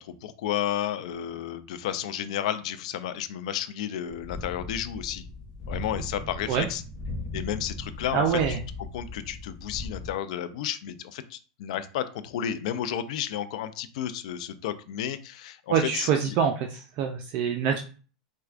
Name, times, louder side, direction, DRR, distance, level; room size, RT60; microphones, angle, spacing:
voice 1, 0.0-5.3 5.7-6.8 7.3-8.6 8.9-16.1, left 10 dB, 70° left, 11 dB, 0.4 m, -32 dB
sound 1, 4.1-10.1, left 2 dB, 30° left, 0.9 m, -38 dB
voice 2, 8.1-8.6 15.7-17.8, right 7 dB, 50° right, 4 dB, 0.4 m, -25 dB
4.4 x 2.2 x 2.4 m, 0.38 s
supercardioid pair, 130°, 4 cm